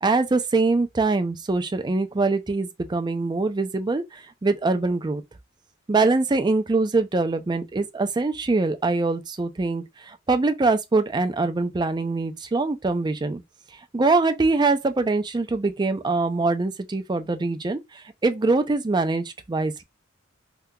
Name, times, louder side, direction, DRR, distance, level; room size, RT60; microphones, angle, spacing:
voice 1, 0.0-5.2 5.9-13.4 13.9-19.8, right 3 dB, 20° right, 0.4 m, -23 dB
3.6 x 2.8 x 2.2 m
head